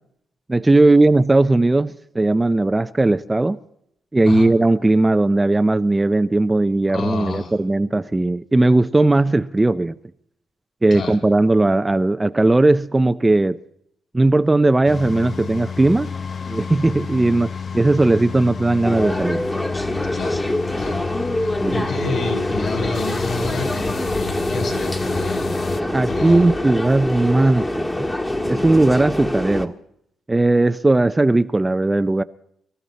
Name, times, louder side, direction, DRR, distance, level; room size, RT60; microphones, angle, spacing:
voice 1, 0.5-3.6 4.1-9.9 10.8-13.6 14.1-16.1 16.5-19.4 21.6-21.8 25.9-28.1 28.4-29.7 30.3-32.2, right 2 dB, 15° right, 0.6 m, -17 dB
voice 2, 6.9-7.6 10.9-11.2 20.1-20.4 20.8-21.0 21.3-25.5 26.1-26.5, left 3 dB, 60° left, 7.5 m, -28 dB
sound 1, 14.9-25.8, left 6 dB, 45° left, 0.8 m, -31 dB
sound 2, 18.8-29.7, left 1 dB, 15° left, 1.7 m, -25 dB
25.0 x 13.5 x 4.1 m
cardioid pair, 90°, 0 cm